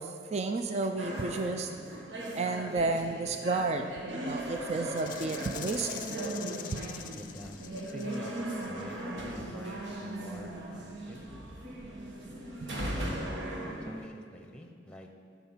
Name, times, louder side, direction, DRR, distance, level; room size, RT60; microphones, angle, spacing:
voice 1, 0.0-1.7 2.3-6.4 6.7-6.8 12.6-12.7, right 3 dB, 35° right, 6 dB, 0.4 m, -32 dB
sound 1, 1.0-14.0, right 1 dB, 85° right, 1.4 m, -38 dB
Rattle (instrument), 5.0-8.8, left 11 dB, 45° left, 0.4 m, -44 dB
voice 2, 7.1-11.2 12.6-15.1, equal, 5° left, 3 dB, 0.8 m, -47 dB
12.5 x 5.8 x 5.6 m, 2.1 s
head